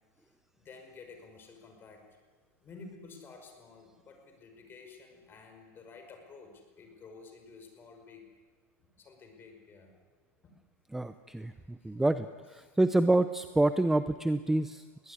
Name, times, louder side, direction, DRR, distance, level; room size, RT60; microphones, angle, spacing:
voice 1, 0.6-2.0 2.6-8.3 9.0-9.9 10.4-10.6 11.8-11.9 12.6-12.8, left 4 dB, 25° left, 5 dB, 5.4 m, -52 dB
voice 2, 10.9-15.1, right 2 dB, 5° right, 12 dB, 0.6 m, -28 dB
22.0 x 18.0 x 9.8 m, 1.4 s
supercardioid pair, 140°, 8 cm